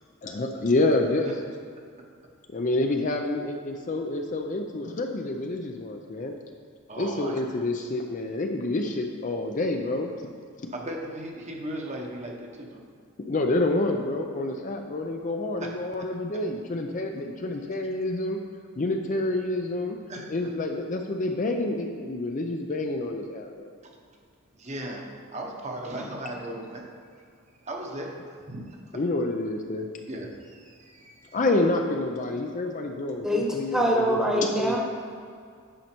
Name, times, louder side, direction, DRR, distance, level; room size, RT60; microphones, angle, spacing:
voice 1, 0.2-1.4 2.5-6.3 7.0-10.3 10.6-10.7 13.2-18.4 18.8-20.0 20.3-23.7 28.9-29.9 31.3-34.8, left 2 dB, 35° left, 3 dB, 0.5 m, -28 dB
voice 2, 6.9-7.3 10.7-12.8 15.6-15.7 16.3-16.4 20.1-20.5 24.6-26.9 27.5-28.8 30.1-31.4, right 1 dB, 30° right, 0 dB, 1.0 m, -37 dB
voice 3, 33.7-34.8, equal, 5° right, -2 dB, 1.1 m, -23 dB
9.1 x 5.5 x 4.4 m, 2.2 s
head